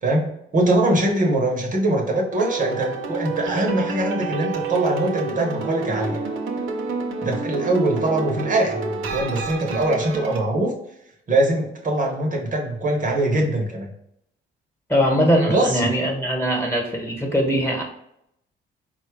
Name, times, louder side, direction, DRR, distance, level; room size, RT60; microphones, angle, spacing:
voice 1, 0.0-6.2 7.2-10.7 11.3-13.9 15.5-15.8, right 1 dB, 40° right, 1 dB, 1.0 m, -22 dB
sound 1, 2.3-10.4, right 4 dB, 85° right, 0.7 m, -29 dB
voice 2, 14.9-17.8, equal, 10° left, 0 dB, 1.3 m, -21 dB
4.2 x 2.3 x 4.6 m, 0.77 s
cardioid pair, 90°, 20 cm